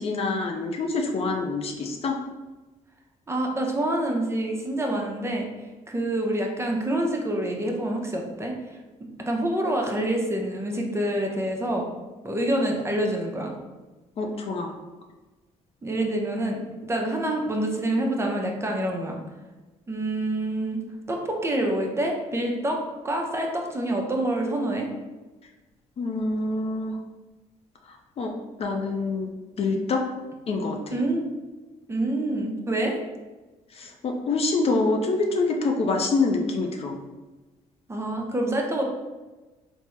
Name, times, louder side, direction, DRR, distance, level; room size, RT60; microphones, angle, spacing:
voice 1, 0.0-2.2 14.2-14.7 26.0-26.9 28.2-28.3 28.6-29.3 29.6-30.0 30.5-30.8 33.8-37.0, left 3 dB, 50° left, 3 dB, 0.5 m, -26 dB
voice 2, 3.3-5.5 5.9-8.5 9.3-11.9 12.2-13.5 15.8-19.2 19.9-20.8 21.1-24.9 30.9-31.3 31.9-33.0 37.9-38.8, right 1 dB, 20° right, 1 dB, 0.6 m, -27 dB
3.4 x 2.0 x 3.1 m, 1.2 s
supercardioid pair, 75°, 13 cm